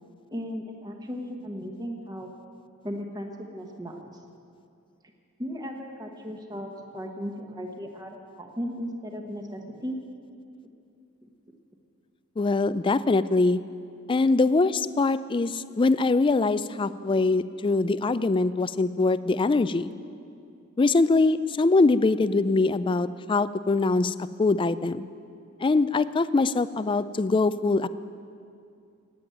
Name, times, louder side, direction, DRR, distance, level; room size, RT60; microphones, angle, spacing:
voice 1, 0.3-2.3 2.8-4.1 5.4-10.0, equal, 20° right, 2 dB, 1.1 m, -36 dB
voice 2, 12.4-13.6 14.1-19.9 20.8-25.1 25.6-27.9, left 3 dB, 25° left, 15 dB, 0.3 m, -23 dB
15.5 x 8.9 x 9.1 m, 2.5 s
head